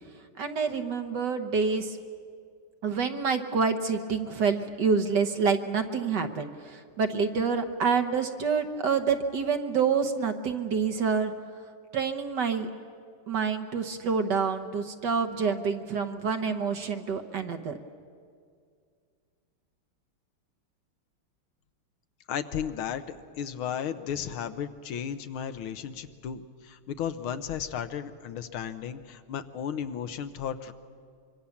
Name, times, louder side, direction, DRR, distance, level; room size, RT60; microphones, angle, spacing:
voice 1, 0.4-2.0 2.8-11.3 11.9-12.7 13.3-17.8, right 5 dB, 60° right, 7 dB, 1.5 m, -27 dB
voice 2, 22.3-30.7, left 8 dB, 75° left, 11 dB, 1.7 m, -34 dB
25.0 x 24.0 x 7.1 m, 2.1 s
omnidirectional pair, 2.4 m